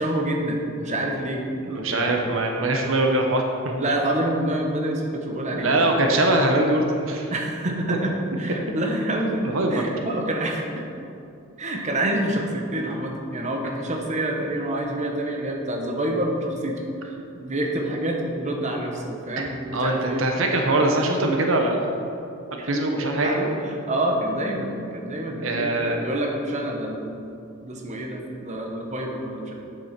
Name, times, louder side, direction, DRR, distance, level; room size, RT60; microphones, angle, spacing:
voice 1, 0.0-1.4 1.7-2.2 2.6-2.7 3.8-5.8 7.3-9.4 9.7-10.8 11.6-16.8 17.0-20.2 22.6-22.7 23.2-27.2 27.6-29.5, right 1 dB, 35° right, 1 dB, 1.1 m, -27 dB
voice 2, 1.6-3.4 3.7-3.9 5.5-7.3 9.4-9.8 19.4-19.5 19.7-21.9 22.7-23.5 25.4-26.0, right 2 dB, 65° right, 2 dB, 1.0 m, -22 dB
8.4 x 6.9 x 5.9 m, 2.7 s
head